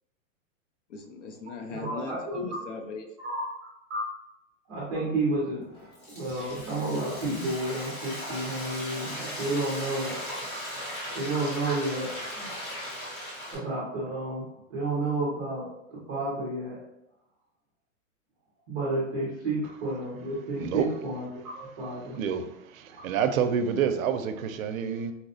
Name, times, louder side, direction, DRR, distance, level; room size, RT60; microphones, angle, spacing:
voice 1, 0.9-3.1, left 4 dB, 65° left, 5 dB, 0.6 m, -38 dB
voice 2, 1.7-2.2 3.2-3.4 3.9-4.0 4.7-5.7 6.1-10.1 11.1-12.6 13.5-15.7 16.1-16.8 18.7-21.3 21.5-22.2, right 2 dB, 15° right, -7 dB, 0.4 m, -31 dB
Frying (food), 5.7-13.6, equal, 30° left, 0.8 m, -37 dB
voice 3, 22.2-25.1, right 7 dB, 85° right, 9 dB, 0.5 m, -28 dB
4.2 x 2.0 x 2.6 m, 0.87 s
supercardioid pair, 170°, 40 cm